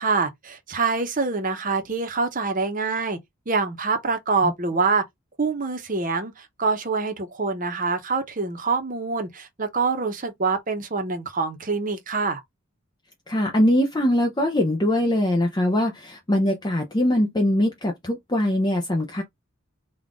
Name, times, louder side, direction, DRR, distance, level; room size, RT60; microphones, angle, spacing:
voice 1, 0.0-3.2 3.5-5.0 5.4-12.4, right 4 dB, 40° right, 0.9 m, -25 dB
voice 2, 13.3-19.2, left 1 dB, 20° left, 0.6 m, -22 dB
3.8 x 2.4 x 3.6 m
head